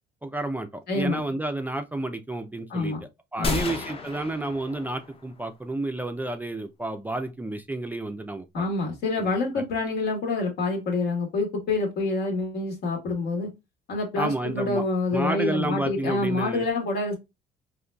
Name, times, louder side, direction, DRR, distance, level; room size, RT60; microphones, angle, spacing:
voice 1, 0.2-8.7 9.2-9.6 14.2-14.8 15.1-16.7, right 2 dB, 10° right, 0.3 m, -31 dB
voice 2, 0.9-1.2 2.7-3.0 3.4-3.7 8.5-13.5 13.9-17.2, left 3 dB, 70° left, 1.4 m, -27 dB
sound 1, 3.4-5.3, left 3 dB, 35° left, 0.7 m, -32 dB
3.8 x 2.8 x 2.2 m
cardioid pair, 110°, 17 cm